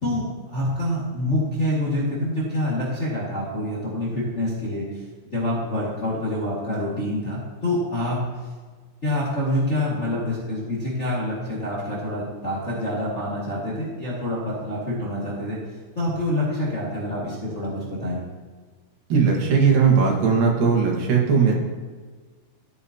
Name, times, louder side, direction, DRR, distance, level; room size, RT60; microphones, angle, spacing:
voice 1, 0.0-4.8 5.3-8.2 9.0-15.6 15.9-18.2, left 1 dB, 30° left, -8 dB, 1.4 m, -26 dB
voice 2, 19.1-21.5, right 6 dB, 85° right, -1 dB, 3.3 m, -18 dB
13.5 x 8.1 x 2.8 m, 1.5 s
omnidirectional pair, 3.9 m